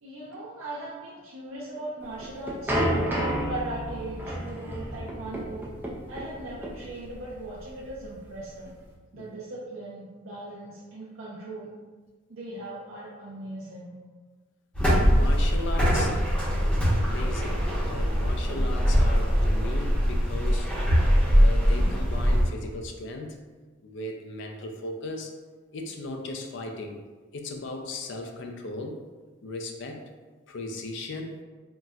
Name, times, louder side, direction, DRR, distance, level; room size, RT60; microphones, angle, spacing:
voice 1, 0.0-3.0 3.5-5.7 6.1-8.7 9.1-11.9 12.3-14.0, right 2 dB, 75° right, -6 dB, 0.5 m, -39 dB
sound 1, 2.0-8.9, equal, 10° right, 0.4 m, -31 dB
sound 2, 14.7-22.4, equal, 5° left, 0.8 m, -22 dB
voice 2, 15.0-16.2 16.6-20.7 21.3-23.4 23.8-25.3 25.7-27.0 27.3-29.0 29.4-30.0 30.5-31.4, left 2 dB, 60° left, 3 dB, 0.4 m, -37 dB
4.0 x 2.1 x 2.3 m, 1.3 s
head